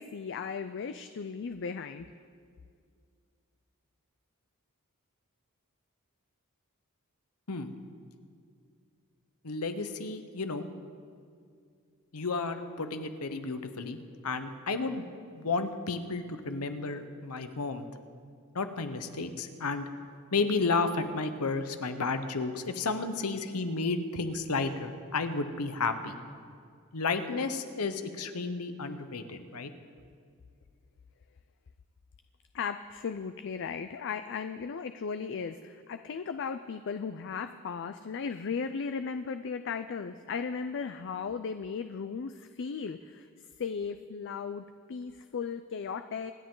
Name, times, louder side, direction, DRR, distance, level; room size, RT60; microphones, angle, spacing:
voice 1, 0.0-2.1 32.5-43.3 43.6-46.3, left 5 dB, 55° left, 9 dB, 0.4 m, -36 dB
voice 2, 9.4-10.7 12.1-14.0 14.2-15.0 15.4-17.8 18.5-19.9 20.3-26.1 26.9-29.7, left 3 dB, 90° left, 9 dB, 1.0 m, -32 dB
26.0 x 10.5 x 3.8 m, 2.2 s
head